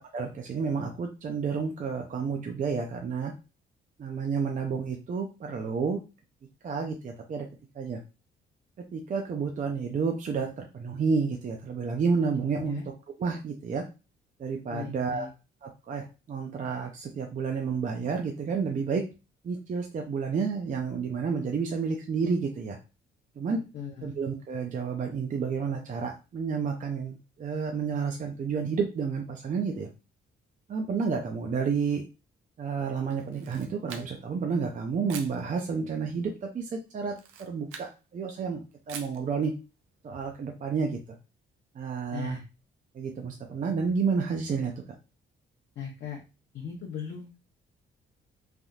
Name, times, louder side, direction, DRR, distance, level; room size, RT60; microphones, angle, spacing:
voice 1, 0.1-3.3 4.0-6.0 6.6-7.5 7.8-8.0 8.9-12.8 13.2-13.8 14.4-15.3 15.6-19.0 19.4-22.8 23.4-23.6 24.0-29.9 30.7-32.0 32.6-38.6 38.9-39.5 40.0-41.0 41.8-42.4 43.0-44.7, right 5 dB, 40° right, 3 dB, 0.5 m, -30 dB
voice 2, 12.5-12.9 14.7-15.3 23.7-24.2 42.1-42.4 45.8-46.2 46.5-47.4, left 7 dB, 65° left, -2 dB, 0.8 m, -38 dB
Camera, 33.2-34.4 35.1-35.4 37.1-37.9 38.9-39.2, right 7 dB, 85° right, 0.5 m, -44 dB
3.4 x 2.6 x 2.3 m, 0.30 s
cardioid pair, 90°, 20 cm